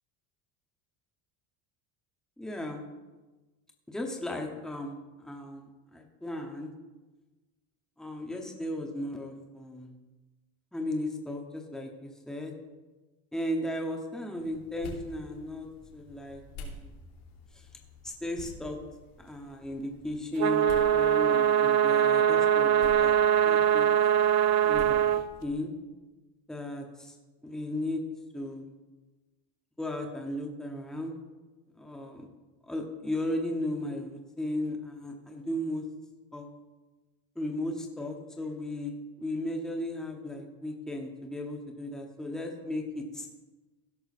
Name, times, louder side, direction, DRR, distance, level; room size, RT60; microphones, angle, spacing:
voice 1, 2.4-2.8 3.9-6.7 8.0-9.9 10.7-12.5 13.3-15.7 15.9-16.9 18.0-18.8 19.2-23.1 23.4-23.9 24.6-25.0 25.4-25.7 26.5-27.1 27.4-28.0 28.3-28.6 29.8-31.2 31.8-32.3 32.7-35.8 36.3-36.5 37.4-38.9 39.2-43.3, left 1 dB, ahead, 2 dB, 0.9 m, -35 dB
sound 1, 14.4-25.5, left 2 dB, 90° left, 3.0 m, -49 dB
sound 2, 20.4-25.2, right 10 dB, 45° right, 0.4 m, -23 dB
16.5 x 6.2 x 4.2 m, 1.2 s
cardioid pair, 165°, 41 cm